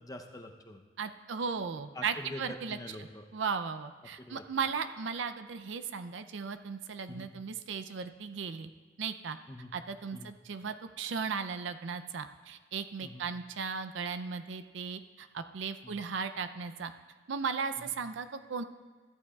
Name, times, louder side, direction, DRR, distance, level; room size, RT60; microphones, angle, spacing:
voice 1, 0.0-0.8 1.9-3.2 4.2-4.4 7.1-7.3 9.5-9.7 10.1-10.3 13.0-13.3 15.8-16.1 17.8-17.9, left 1 dB, 20° left, 4 dB, 0.6 m, -45 dB
voice 2, 1.0-2.8 3.3-8.7 9.0-9.4 9.7-16.9 17.3-18.6, right 5 dB, 65° right, 10 dB, 0.5 m, -36 dB
14.0 x 11.5 x 2.3 m, 1.5 s
head